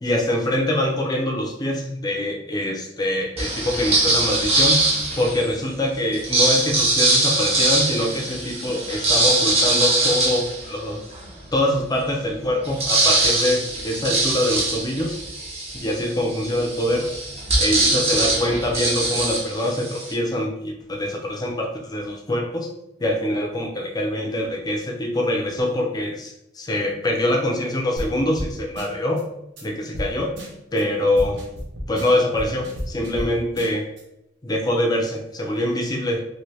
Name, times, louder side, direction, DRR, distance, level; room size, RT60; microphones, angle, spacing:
voice 1, 0.0-4.8 5.2-11.0 11.5-15.2 15.8-17.1 17.6-22.7 23.0-29.2 29.6-30.3 30.7-31.4 31.9-33.9 34.4-36.2, left 1 dB, 20° left, 1 dB, 0.5 m, -24 dB
sound 1, 3.4-5.5 6.1-11.3 11.8-11.9 12.1-20.1, right 2 dB, 35° right, 0.7 m, -22 dB
sound 2, 28.0-28.1 28.4-28.5 28.8-29.2 29.6-29.7 29.9-30.1 30.4-30.8 31.2-33.3 33.6-34.0, equal, 65° right, 0.8 m, -32 dB
2.8 x 2.6 x 3.1 m, 0.84 s
head